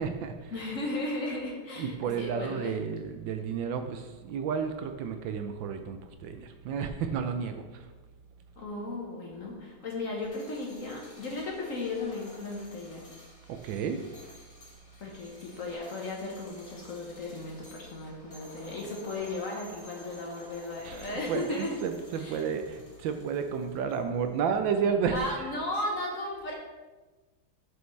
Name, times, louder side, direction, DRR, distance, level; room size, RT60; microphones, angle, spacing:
voice 1, 0.0-0.5 1.8-7.9 13.5-14.0 20.8-25.5, right 6 dB, 75° right, 7 dB, 1.2 m, -32 dB
voice 2, 0.5-2.7 8.6-13.1 15.0-21.8 22.1-22.4 25.1-26.5, left 2 dB, 50° left, -1 dB, 1.2 m, -35 dB
sound 1, 10.1-24.3, left 1 dB, 20° left, 1.0 m, -52 dB
6.9 x 6.5 x 3.2 m, 1.2 s
omnidirectional pair, 2.2 m